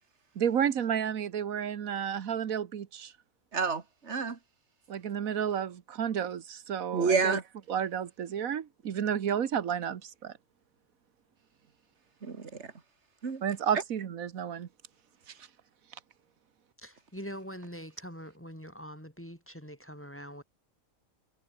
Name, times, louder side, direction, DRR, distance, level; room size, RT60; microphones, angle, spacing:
voice 1, 0.3-3.1 4.9-7.4 7.7-10.3 13.4-14.7, right 8 dB, 90° right, 1.6 m, -31 dB
voice 2, 3.5-4.4 6.9-7.4 12.2-12.7 13.2-13.4, right 5 dB, 55° right, 2.2 m, -29 dB
voice 3, 16.8-20.4, equal, 10° left, 6.1 m, -44 dB
omnidirectional pair, 1.4 m